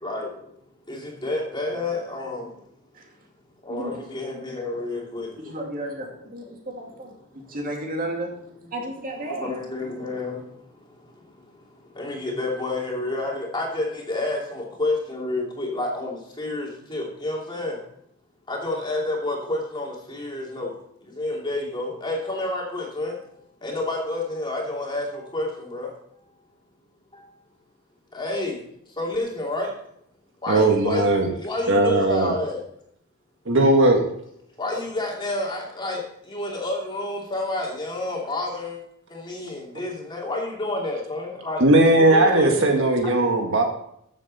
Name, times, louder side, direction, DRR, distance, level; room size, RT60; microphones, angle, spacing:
voice 1, 0.9-2.5 3.6-5.5 9.3-10.4 11.9-17.8 18.5-20.7 21.2-23.1 23.6-25.9 28.1-28.6 29.0-29.7 30.4-31.1 31.4-32.6 34.6-36.0 36.3-38.8 39.1-41.6 41.9-43.3, left 2 dB, 20° left, -2 dB, 2.8 m, -29 dB
voice 2, 3.7-4.4 5.4-8.3 8.7-9.5, right 1 dB, 40° right, 0 dB, 2.5 m, -33 dB
voice 3, 30.5-31.3 31.7-32.3 33.5-34.0 41.6-43.6, right 2 dB, 55° right, 2 dB, 1.8 m, -18 dB
14.0 x 7.9 x 4.2 m, 0.72 s
head